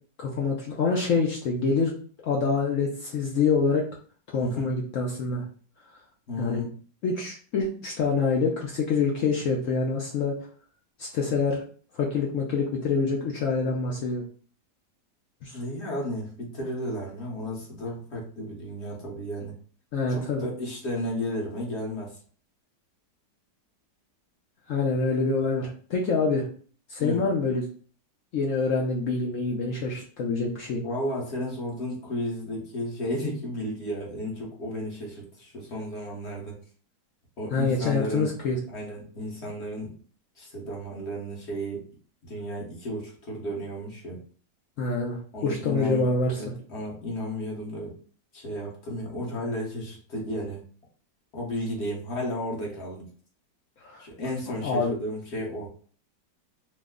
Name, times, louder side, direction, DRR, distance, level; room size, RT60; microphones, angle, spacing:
voice 1, 0.2-1.9 2.2-3.8 4.3-5.5 6.4-6.7 7.0-10.3 11.0-11.6 11.9-14.2 15.4-15.6 19.9-20.4 24.7-26.5 26.9-27.6 28.3-30.8 37.5-38.6 44.8-46.5 53.8-54.0 54.6-55.0, left 4 dB, 70° left, -2 dB, 0.8 m, -26 dB
voice 2, 4.4-4.7 6.3-6.7 15.5-19.5 20.1-22.2 27.0-27.2 30.8-36.5 37.4-38.3 38.7-39.9 40.4-41.9 42.2-44.2 45.3-46.1 46.3-47.9 48.3-50.6 51.3-53.1 54.0-55.7, equal, 45° left, -2 dB, 1.1 m, -33 dB
3.1 x 2.1 x 3.5 m, 0.43 s
omnidirectional pair, 1.9 m